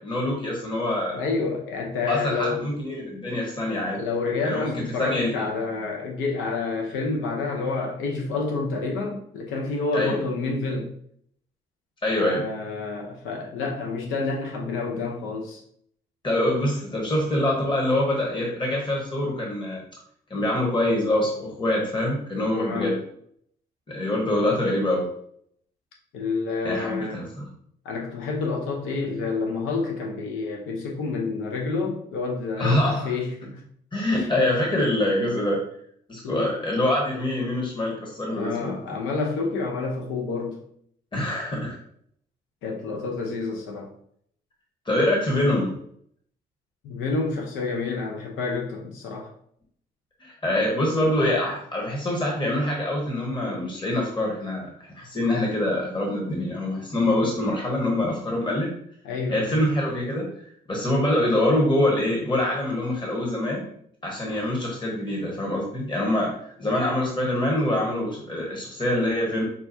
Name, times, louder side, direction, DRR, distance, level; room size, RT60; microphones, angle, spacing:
voice 1, 0.0-1.2 2.1-4.0 4.4-4.7 5.0-5.4 9.9-10.2 12.0-12.5 16.2-19.8 20.3-23.0 23.9-25.1 26.6-27.5 32.6-33.1 33.9-35.6 36.1-39.0 41.1-41.8 44.8-45.8 50.2-58.7 59.3-60.3 60.7-63.7 64.0-69.4, left 1 dB, 25° left, -2 dB, 1.2 m, -25 dB
voice 2, 1.1-2.7 3.9-10.9 12.2-15.6 22.5-23.0 26.1-27.2 27.8-33.6 34.2-34.3 36.2-36.5 38.3-40.6 42.6-43.9 46.8-49.3 59.0-59.6, left 4 dB, 70° left, 0 dB, 0.8 m, -29 dB
5.5 x 2.4 x 2.7 m, 0.66 s
hypercardioid pair, 45°, 21 cm